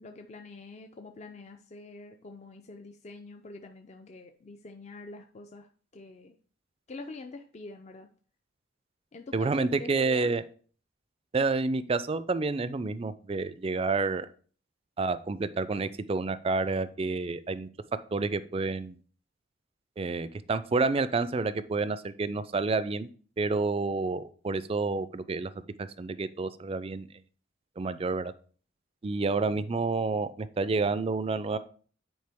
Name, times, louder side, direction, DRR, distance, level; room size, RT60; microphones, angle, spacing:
voice 1, 0.0-5.7 5.9-6.4 6.9-8.1 9.1-10.3, left 3 dB, 35° left, 5 dB, 0.4 m, -45 dB
voice 2, 9.3-10.4 11.3-14.3 15.0-17.7 18.1-19.0 20.0-23.1 23.4-25.5 25.8-27.1 27.8-28.3 29.0-31.6, right 3 dB, 30° right, 14 dB, 0.3 m, -29 dB
9.5 x 4.4 x 3.4 m, 0.43 s
head